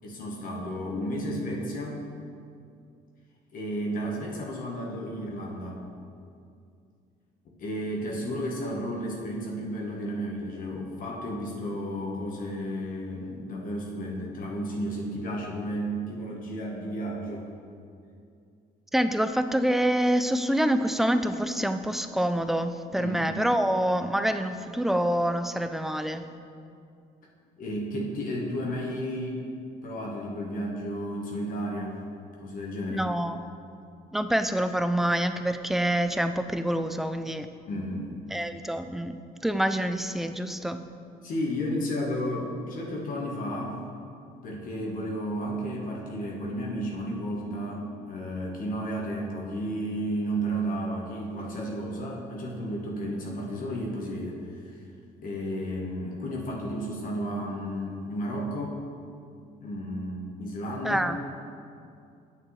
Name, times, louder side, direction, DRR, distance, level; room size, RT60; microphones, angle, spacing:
voice 1, 0.0-2.0 3.5-5.8 7.6-17.5 23.0-23.4 27.6-29.5 29.8-32.0 32.4-33.1 37.7-38.2 41.2-43.8 44.4-54.8 55.1-58.8 59.6-61.0, equal, 55° left, -2 dB, 1.2 m, -33 dB
voice 2, 18.9-26.2 32.9-33.4 34.1-37.5 38.3-40.8 60.8-61.2, right 1 dB, ahead, 9 dB, 0.3 m, -26 dB
8.5 x 7.3 x 3.2 m, 2.4 s
cardioid pair, 110°, 17 cm